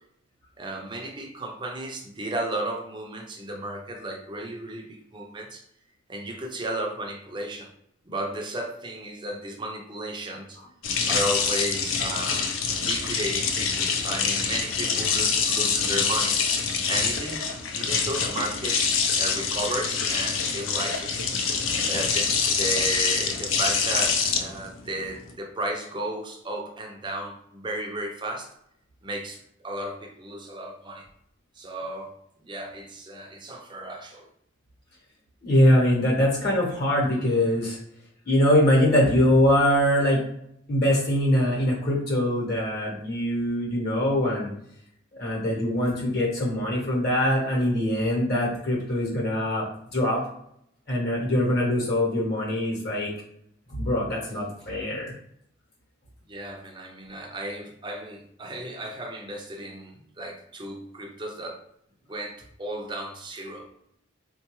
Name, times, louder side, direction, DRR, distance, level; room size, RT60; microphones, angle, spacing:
voice 1, 0.6-5.6 6.1-7.7 8.1-10.6 11.1-16.4 16.9-18.9 19.2-21.3 21.9-28.5 29.0-31.1 31.6-32.2 32.4-34.2 56.3-61.6 62.1-63.7, right 1 dB, 20° right, 2 dB, 0.4 m, -34 dB
water faucet, 10.8-25.3, left 5 dB, 70° left, 0.5 m, -25 dB
voice 2, 35.4-37.8 38.2-40.2 40.7-44.5 45.2-49.7 49.9-50.2 50.9-53.1 53.7-55.1, left 1 dB, 50° left, -4 dB, 0.9 m, -23 dB
3.6 x 2.2 x 3.0 m, 0.73 s
head